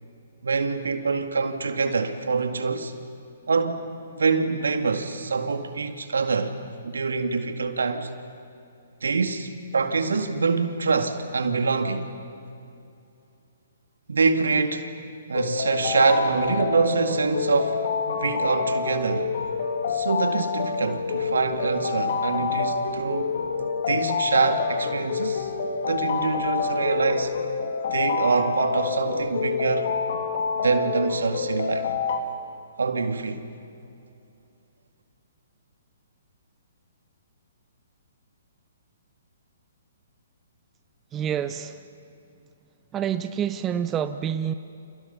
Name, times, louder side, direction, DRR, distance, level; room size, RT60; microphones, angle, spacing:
voice 1, 0.4-2.9 3.5-3.8 4.1-6.6 6.8-8.1 9.0-12.1 14.1-14.9 15.3-19.3 19.9-23.3 23.9-25.5 25.8-27.3 27.9-29.9 30.6-31.9 32.8-33.4, right 4 dB, 75° right, 2.1 m, -25 dB
sound 1, 15.3-32.2, left 5 dB, 55° left, 2.5 m, -27 dB
voice 2, 41.1-41.8 42.9-44.5, right 9 dB, 20° right, 0.8 m, -27 dB
30.0 x 29.0 x 5.7 m
figure-of-eight pair, 130°, 0 cm